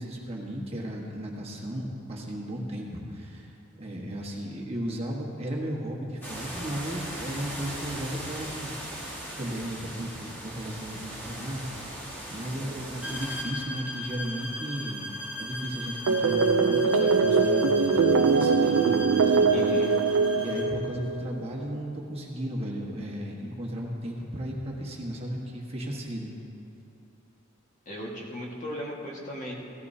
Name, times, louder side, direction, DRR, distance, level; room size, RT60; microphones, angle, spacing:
voice 1, 0.0-11.6 12.1-15.0 15.4-19.4 19.8-19.9 20.3-26.3, equal, 30° right, -3 dB, 1.4 m, -35 dB
sound 1, 6.2-13.4, right 1 dB, 10° left, 1.7 m, -39 dB
sound 2, 13.0-20.8, equal, 5° right, 1.4 m, -38 dB
sound 3, 16.1-21.2, right 4 dB, 80° right, 0.4 m, -22 dB
voice 2, 19.5-19.9 27.8-29.5, equal, 35° left, -3 dB, 1.7 m, -36 dB
16.5 x 14.5 x 2.8 m, 2.8 s
head